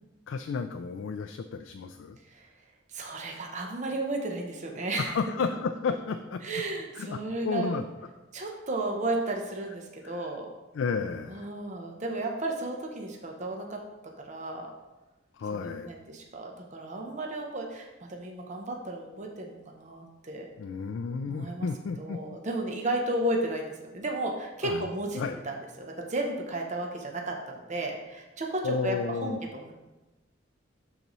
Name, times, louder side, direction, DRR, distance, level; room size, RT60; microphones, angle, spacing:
voice 1, 0.3-2.2 5.0-6.4 6.9-7.2 7.4-7.8 10.0-10.3 10.7-11.5 15.3-15.9 20.6-22.2 24.6-24.8 25.2-25.4 28.6-29.4, left 5 dB, 75° left, 7 dB, 0.3 m, -32 dB
voice 2, 2.9-5.2 6.4-7.8 8.3-10.5 11.3-13.8 14.2-14.7 15.5-20.5 21.3-21.7 22.0-23.7 23.9-29.7, right 2 dB, 40° right, 1 dB, 0.8 m, -33 dB
12.0 x 4.0 x 3.1 m, 1.1 s
head